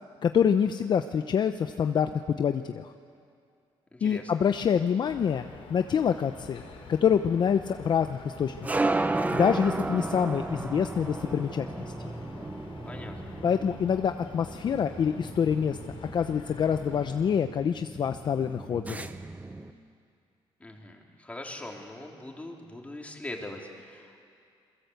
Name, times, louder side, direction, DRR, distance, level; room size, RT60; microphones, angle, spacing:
voice 1, 0.2-2.9 4.0-6.6 6.9-8.5 9.3-11.7 13.4-15.8 16.1-19.1, left 7 dB, 50° left, 8 dB, 0.8 m, -26 dB
voice 2, 3.9-4.3 12.9-13.1 20.6-24.2, left 1 dB, 15° left, 0 dB, 3.6 m, -41 dB
sound 1, 5.1-17.3, left 4 dB, 65° left, 5.1 m, -47 dB
sound 2, 5.7-19.7, right 2 dB, 15° right, 1.0 m, -35 dB
28.0 x 23.0 x 8.1 m, 2.3 s
cardioid pair, 120°, 10 cm